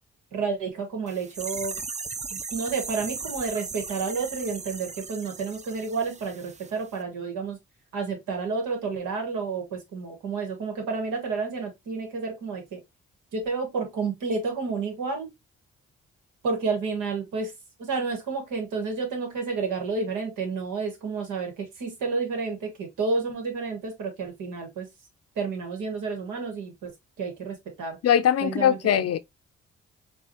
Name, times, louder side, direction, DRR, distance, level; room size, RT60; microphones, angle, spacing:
voice 1, 0.3-1.7 2.3-7.6 7.9-12.8 13.3-15.3 16.4-17.5 17.8-24.9 25.3-26.9 27.2-28.0 28.4-29.1, right 4 dB, 85° right, 1.5 m, -30 dB
sound 1, 1.1-6.7 7.0-7.1, right 4 dB, 25° right, 0.5 m, -37 dB
voice 2, 28.0-29.2, left 9 dB, 55° left, 0.5 m, -21 dB
4.7 x 2.4 x 2.9 m
supercardioid pair, 50°, 30 cm